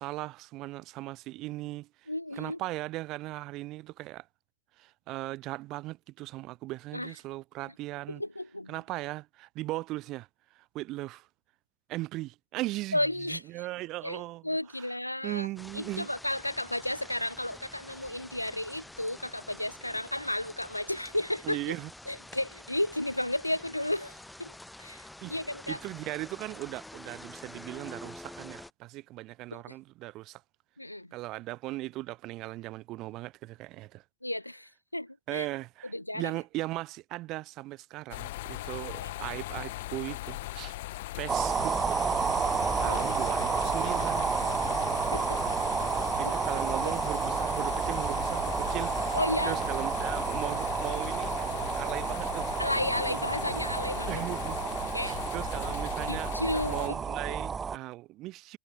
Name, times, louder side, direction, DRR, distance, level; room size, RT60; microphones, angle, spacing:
voice 1, 0.0-4.3 4.8-8.2 8.7-10.3 10.6-11.3 11.9-13.0 13.3-14.5 14.8-14.9 15.2-16.1 21.4-21.9 25.2-25.4 25.7-30.4 31.1-34.0 35.3-40.8 41.2-42.1 42.8-44.4 46.2-49.2 49.4-52.5 53.0-53.2 54.1-54.6 54.9-56.3 56.7-58.6, right 18 dB, 40° right, 2.2 m, -38 dB
voice 2, 2.1-2.6 6.9-7.1 8.1-8.7 12.9-13.4 14.0-15.5 15.7-21.6 22.1-25.8 29.5-29.7 30.8-31.1 34.2-35.5 35.9-36.3 39.0-39.1 42.8-43.0 45.1-45.4 46.2-46.3 46.8-46.9 49.1-49.6 52.6-54.2 54.9-55.2 56.1-57.0 57.3-57.4, left 1 dB, 85° left, 2.1 m, -33 dB
sound 1, 15.6-28.7, left 1 dB, 5° left, 6.7 m, -48 dB
sound 2, 38.1-56.9, left 17 dB, 55° left, 4.0 m, -38 dB
sound 3, 41.3-57.8, right 6 dB, 20° right, 0.5 m, -31 dB
figure-of-eight pair, 90°, 0 cm